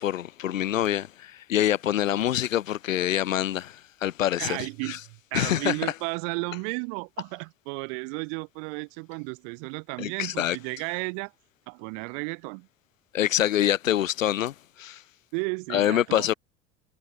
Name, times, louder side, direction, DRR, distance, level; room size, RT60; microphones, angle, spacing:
voice 1, 0.0-5.0 5.3-5.9 10.0-10.6 13.1-15.0 15.7-16.3, left 12 dB, 80° left, 4.9 m, -26 dB
voice 2, 4.4-11.3 11.7-12.7 15.3-16.4, right 40 dB or more, 65° right, 6.5 m, -33 dB
hypercardioid pair, 75°, 39 cm